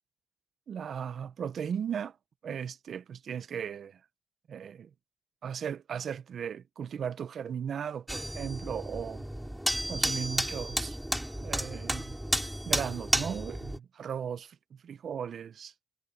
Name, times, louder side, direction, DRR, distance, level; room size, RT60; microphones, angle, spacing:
voice 1, 0.7-2.1 2.4-4.0 4.5-4.9 5.4-9.3 9.9-11.0 11.4-12.1 12.7-15.7, right 8 dB, 70° right, 1.3 m, -37 dB
sound 1, 8.1-13.8, right 1 dB, 5° right, 4.4 m, -32 dB
supercardioid pair, 50°, 0 cm